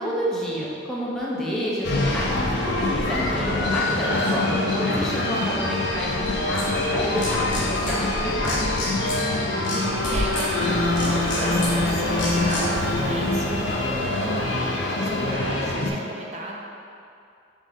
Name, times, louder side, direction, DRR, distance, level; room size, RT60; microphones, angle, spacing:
voice 1, 0.0-2.4 2.6-8.7, equal, 5° left, -7 dB, 0.7 m, -29 dB
sound 1, 1.8-15.9, left 2 dB, 65° left, 0.6 m, -24 dB
sound 2, 6.5-6.7 7.2-8.0 8.4-9.2 9.6-10.5 11.0-11.7 12.2-12.6, left 3 dB, 80° left, 1.2 m, -31 dB
voice 2, 9.3-16.6, right 1 dB, 35° right, -2 dB, 0.6 m, -37 dB
Breathing, 9.9-14.9, equal, 20° right, 1.4 m, -34 dB
3.8 x 3.7 x 3.9 m, 2.5 s
head